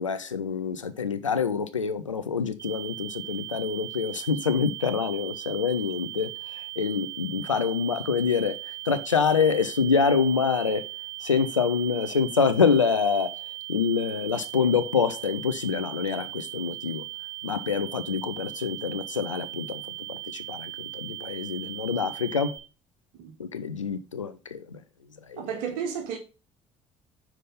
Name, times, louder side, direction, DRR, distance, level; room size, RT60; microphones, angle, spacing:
voice 1, 0.0-8.6 8.9-10.8 11.2-13.3 13.7-17.0 17.4-19.8 20.1-22.6 23.4-24.8 25.3-25.4, left 5 dB, 90° left, 0.5 m, -26 dB
sound 1, 2.6-22.6, right 18 dB, 20° right, 2.1 m, -38 dB
voice 2, 25.4-26.2, right 7 dB, 65° right, 1.8 m, -32 dB
5.7 x 5.1 x 5.5 m
figure-of-eight pair, 55°, 16 cm